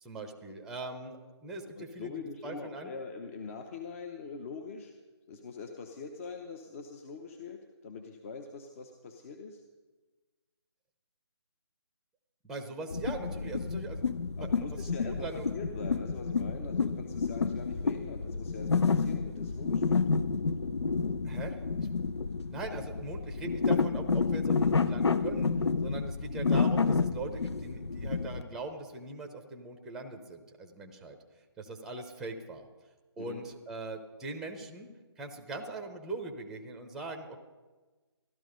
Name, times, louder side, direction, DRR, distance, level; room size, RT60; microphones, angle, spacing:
voice 1, 0.0-2.1 2.4-2.9 12.4-14.5 14.8-15.5 21.2-21.9 22.5-25.5 25.8-31.2 31.6-32.6 33.2-34.9 35.2-37.4, right 3 dB, 5° right, 4 dB, 0.8 m, -41 dB
voice 2, 1.7-4.9 5.3-9.6 14.4-20.0 33.2-33.4, left 5 dB, 30° left, 5 dB, 0.9 m, -43 dB
sound 1, 12.9-28.4, left 4 dB, 75° left, 0.8 m, -30 dB
14.5 x 12.5 x 5.2 m, 1.3 s
figure-of-eight pair, 155°, 14 cm